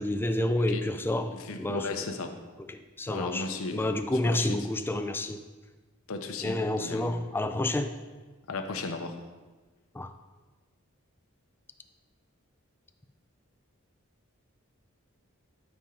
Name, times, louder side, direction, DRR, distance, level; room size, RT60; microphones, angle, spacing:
voice 1, 0.0-2.0 2.7-5.4 6.4-7.9 9.9-10.1, left 1 dB, 10° left, 8 dB, 0.4 m, -29 dB
voice 2, 1.3-2.3 3.1-3.8 4.2-4.6 6.1-7.1 8.5-9.2, left 3 dB, 75° left, 6 dB, 0.8 m, -35 dB
13.0 x 4.4 x 3.8 m, 1.3 s
head